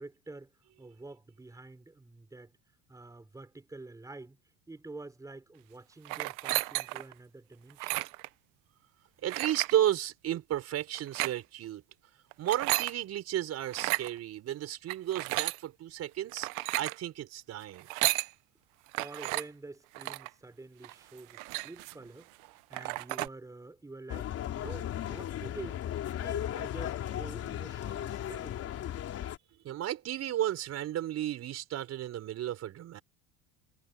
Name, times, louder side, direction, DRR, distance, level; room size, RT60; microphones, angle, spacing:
voice 1, 0.0-2.5 2.9-4.4 4.7-8.0 19.0-25.8 26.2-28.6, right 2 dB, 10° right, 5.2 m, -48 dB
sound 1, 6.0-7.1 7.7-8.3 9.3-9.7 10.9-11.3 12.3-12.9 13.7-14.1 14.9-15.6 16.3-17.0 17.8-18.3 18.9-19.4 19.9-20.3 20.8-20.9 21.2-22.0 22.4-22.5 22.7-23.3, right 22 dB, 65° right, 0.8 m, -33 dB
voice 2, 9.2-11.8 12.4-16.5 16.7-17.9 29.6-33.0, right 12 dB, 45° right, 5.2 m, -33 dB
sound 2, 24.1-29.4, left 11 dB, 45° left, 3.7 m, -36 dB
supercardioid pair, 125°, 34 cm